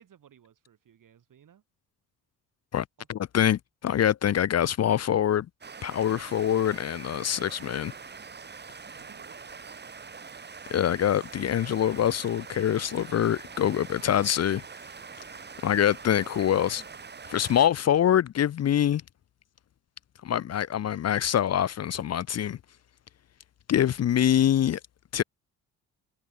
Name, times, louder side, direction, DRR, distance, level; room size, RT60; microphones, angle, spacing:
voice 1, 0.0-1.6 3.0-3.1 8.9-9.8 13.5-14.6, right 9 dB, 60° right, 7.9 m, -57 dB
voice 2, 2.7-5.5 5.8-7.9 10.7-14.6 15.6-16.8 17.3-19.0 20.2-22.6 23.7-24.8 25.1-25.2, left 10 dB, 45° left, 0.7 m, -25 dB
sound 1, 5.6-17.7, right 5 dB, 30° right, 1.8 m, -44 dB
cardioid pair, 90°, 37 cm